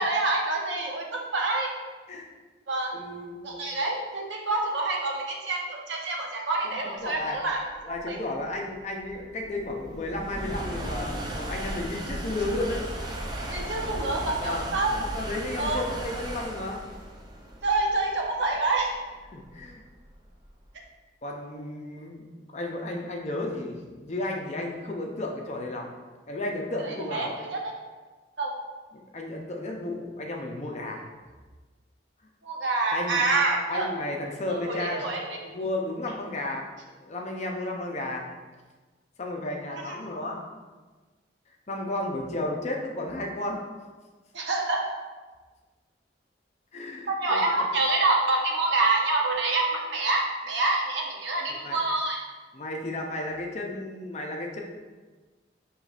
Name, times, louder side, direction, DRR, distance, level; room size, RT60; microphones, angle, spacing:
voice 1, 0.0-1.7 2.7-2.9 3.4-8.2 13.5-15.0 15.6-15.9 17.6-19.0 26.8-27.7 28.4-28.5 32.4-33.9 34.5-35.4 39.9-40.0 44.3-44.9 47.1-52.2, right 2 dB, 75° right, -1 dB, 0.8 m, -27 dB
voice 2, 2.9-3.4 6.9-7.4 7.8-12.8 13.4-13.6 14.4-14.6 14.9-16.8 19.3-19.8 21.2-22.2 22.5-25.9 26.3-27.3 28.9-31.1 32.9-33.2 33.7-35.1 35.4-36.7 37.0-38.3 39.2-40.4 41.7-43.6 46.7-47.7 51.6-51.8 52.5-54.6, left 2 dB, 35° left, 1 dB, 0.5 m, -33 dB
sound 1, 7.3-20.7, right 1 dB, 20° right, 0.4 m, -36 dB
6.4 x 3.0 x 2.4 m, 1.3 s
head